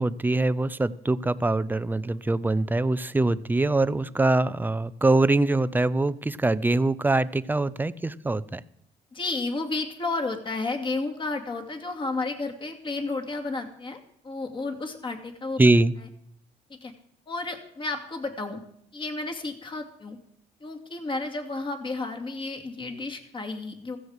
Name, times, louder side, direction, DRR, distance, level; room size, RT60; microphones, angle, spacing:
voice 1, 0.0-8.6 15.6-15.9, right 2 dB, 10° right, 15 dB, 0.6 m, -23 dB
voice 2, 9.1-15.6 16.7-16.9 17.3-18.6 18.9-20.2 20.6-24.0, left 3 dB, 30° left, 5 dB, 2.6 m, -32 dB
16.0 x 15.0 x 4.9 m, 0.71 s
cardioid pair, 110°, 17 cm